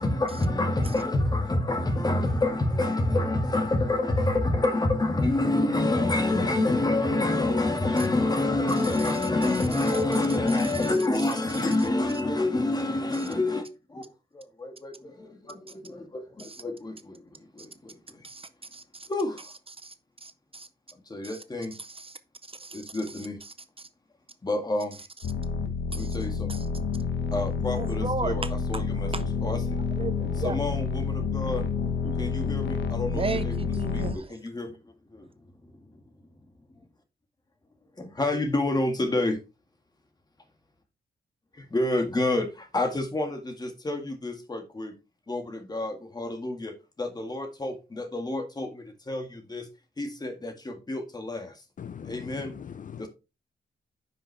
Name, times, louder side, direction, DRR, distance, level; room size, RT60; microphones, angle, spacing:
voice 1, 0.0-13.6 14.6-14.9 16.6-16.9 19.1-19.3 21.1-21.7 22.9-23.3 24.4-24.9 26.0-26.3 27.3-28.4 28.7-29.1 29.4-29.6 30.4-31.6 32.2-33.5 34.4-34.7 38.0-39.4 41.7-42.5 42.7-44.9 45.3-45.4 45.7-46.7 47.0-48.7 49.1-49.2 49.5-49.6 50.0-51.4 52.1-52.5, left 2 dB, 20° left, 1.8 m, -27 dB
voice 2, 8.8-9.2 9.8-9.9 10.5-10.6 10.8-10.9 13.1-13.3 16.4-16.6 18.2-19.1 19.8-19.9 20.2-20.7 21.2-21.4 21.7-22.2 22.5-23.9 25.9-26.2 26.5-26.7 27.7-28.5 29.1-29.2 30.0-30.6 32.0-32.1 33.1-34.4, right 4 dB, 30° right, 0.6 m, -36 dB
sound 1, 25.2-34.1, left 5 dB, 80° left, 1.2 m, -29 dB
voice 3, 51.8-53.1, left 8 dB, 45° left, 0.5 m, -41 dB
9.9 x 5.7 x 3.3 m
wide cardioid pair, 145°, 18 cm